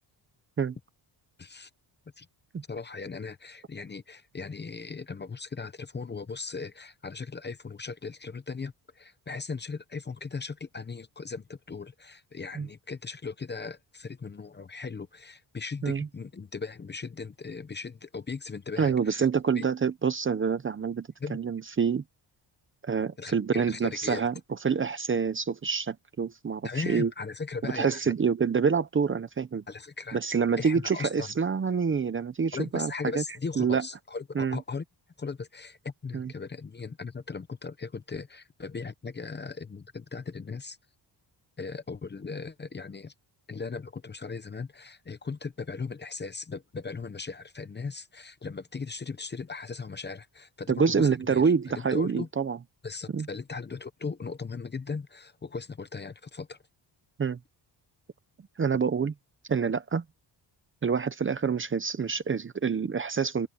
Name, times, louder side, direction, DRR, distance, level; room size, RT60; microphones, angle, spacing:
voice 1, 1.4-1.7 2.2-2.3 2.7-19.3 19.5-19.7 21.2-21.4 23.2-24.3 26.6-28.1 29.7-30.2 30.6-31.3 32.5-34.8 35.2-40.8 41.6-43.1 43.5-52.3 52.8-56.6, left 4 dB, 25° left, 0.8 m, -38 dB
voice 2, 18.8-22.0 22.8-24.3 24.6-27.1 27.6-29.6 30.1-33.2 33.6-33.8 34.4-34.6 36.1-36.3 50.7-52.6 53.1-53.3 57.2-57.4 58.6-59.1 59.5-60.0 60.8-63.5, right 6 dB, 25° right, 0.7 m, -27 dB
open air
wide cardioid pair, 170°, 46 cm